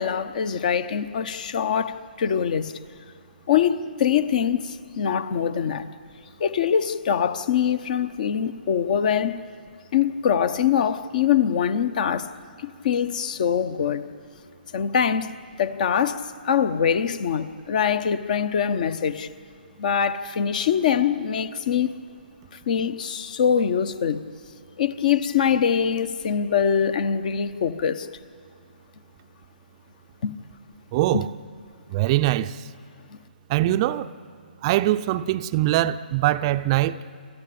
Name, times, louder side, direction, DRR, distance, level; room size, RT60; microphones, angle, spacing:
voice 1, 0.0-2.7 3.5-5.9 6.4-9.4 9.9-12.3 12.6-14.0 14.7-15.3 15.6-19.3 19.8-21.9 22.5-24.2 24.8-28.1 30.2-30.3 31.1-31.3, left 8 dB, 50° left, 1.1 m, -23 dB
voice 2, 30.9-31.3 31.9-32.6 33.5-34.1 34.6-37.0, right 15 dB, 30° right, 0.5 m, -22 dB
27.5 x 13.5 x 8.7 m
hypercardioid pair, 140°, 5 cm